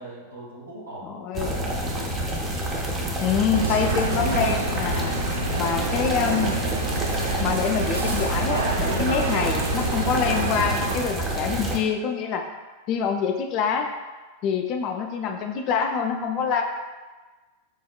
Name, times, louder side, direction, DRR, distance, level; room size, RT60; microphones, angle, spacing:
voice 1, 0.0-2.1, right 1 dB, 90° right, -8 dB, 1.1 m, -41 dB
voice 2, 1.0-1.6 3.2-5.2 5.6-6.6 7.4-12.5 12.9-13.9 14.4-16.6, left 6 dB, 40° left, 4 dB, 0.3 m, -26 dB
sound 1, 1.3-11.8, right 1 dB, 20° right, 0.5 m, -28 dB
sound 2, 3.5-11.0, right 3 dB, 75° right, 0.3 m, -29 dB
4.6 x 2.1 x 2.2 m, 1.2 s
figure-of-eight pair, 90°, 0 cm